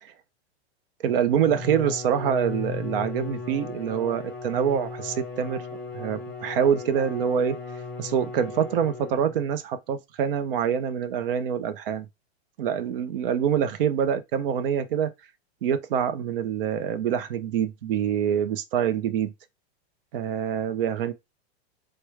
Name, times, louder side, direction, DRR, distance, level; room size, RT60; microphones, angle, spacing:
voice 1, 1.0-5.6 5.9-7.6 8.0-12.1 12.6-15.1 15.6-19.3 20.1-21.1, right 8 dB, 55° right, 0.6 m, -25 dB
Bowed string instrument, 1.2-9.5, left 4 dB, 5° left, 0.9 m, -36 dB
4.7 x 2.2 x 3.1 m
supercardioid pair, 175°, 33 cm